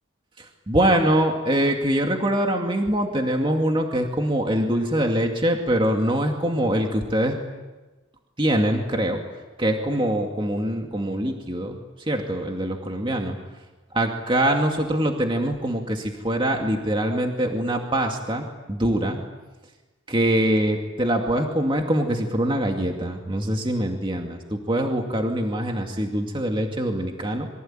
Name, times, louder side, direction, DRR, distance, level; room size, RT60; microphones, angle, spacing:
voice 1, 0.4-7.4 8.4-9.2 9.6-11.8 12.1-13.4 13.9-19.2 20.1-27.5, right 1 dB, 25° right, 2 dB, 2.3 m, -23 dB
27.5 x 24.0 x 9.0 m, 1.2 s
head